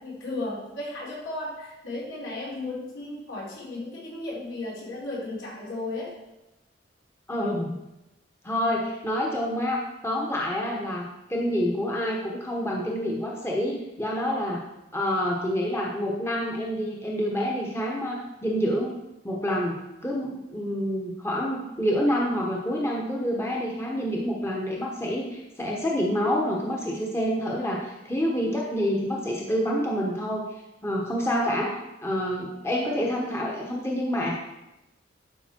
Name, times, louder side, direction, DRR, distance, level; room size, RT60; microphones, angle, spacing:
voice 1, 0.0-6.1, left 2 dB, 80° left, -5 dB, 3.7 m, -35 dB
voice 2, 7.3-7.8 8.4-14.6 14.9-19.0 19.2-19.7 20.0-30.5 30.8-31.7 32.0-34.3, equal, 15° left, -2 dB, 1.0 m, -27 dB
12.0 x 5.4 x 4.5 m, 0.95 s
head